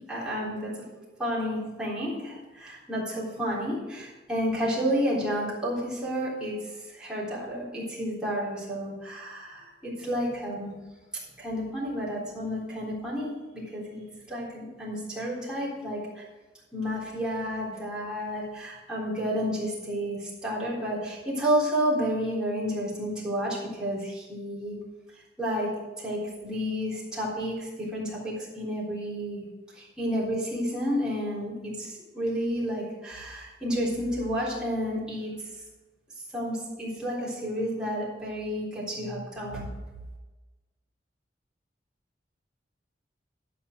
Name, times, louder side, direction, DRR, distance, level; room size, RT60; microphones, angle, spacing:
voice 1, 0.0-10.8 11.4-14.0 14.3-16.2 16.7-24.8 25.2-25.7 26.0-29.5 29.7-35.3 36.3-39.7, equal, 5° right, -8 dB, 3.6 m, -31 dB
12.5 x 5.8 x 6.3 m, 1.2 s
head